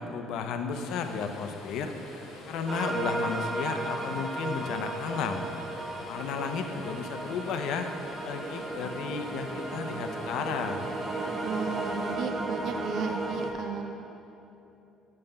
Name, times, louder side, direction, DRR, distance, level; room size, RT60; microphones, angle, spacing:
voice 1, 0.0-1.9 2.5-5.4 6.1-7.9 8.2-10.8, left 6 dB, 70° left, 7 dB, 0.6 m, -33 dB
sound 1, 0.7-12.2, left 2 dB, 90° left, 1.1 m, -46 dB
sound 2, 2.7-13.5, right 2 dB, 20° right, 0.8 m, -34 dB
voice 2, 11.4-14.1, right 6 dB, 60° right, 4 dB, 0.5 m, -35 dB
5.8 x 5.4 x 6.7 m, 2.9 s
cardioid pair, 115°, 0 cm